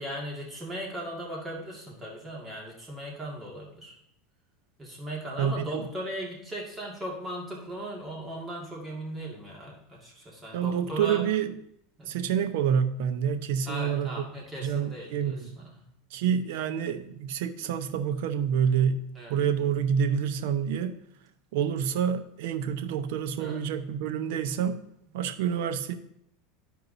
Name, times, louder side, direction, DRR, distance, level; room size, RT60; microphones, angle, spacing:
voice 1, 0.0-3.9 4.8-11.3 12.0-12.2 13.7-15.9 19.1-19.4 23.4-23.6, right 1 dB, 15° right, -3 dB, 1.9 m, -38 dB
voice 2, 10.5-11.5 12.1-14.2 14.6-15.5 16.1-19.0 19.3-20.9 21.5-24.8 25.1-25.9, right 8 dB, 70° right, 8 dB, 0.7 m, -27 dB
13.0 x 4.6 x 2.6 m, 0.73 s
supercardioid pair, 115°, 0 cm